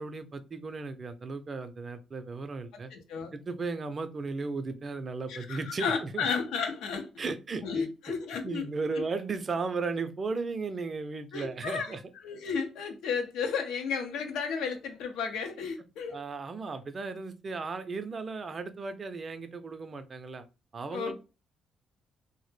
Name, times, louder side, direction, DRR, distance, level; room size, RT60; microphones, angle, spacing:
voice 1, 0.0-2.9 3.3-6.3 7.2-7.9 8.4-12.0 16.1-20.5 20.7-21.1, right 4 dB, 40° right, 0.4 m, -35 dB
voice 2, 2.9-3.3 5.3-7.1 7.6-8.7 8.9-9.0 11.3-11.9 12.2-16.2 20.9-21.1, left 5 dB, 90° left, 0.5 m, -33 dB
2.2 x 2.0 x 3.1 m
cardioid pair, 90°, 0 cm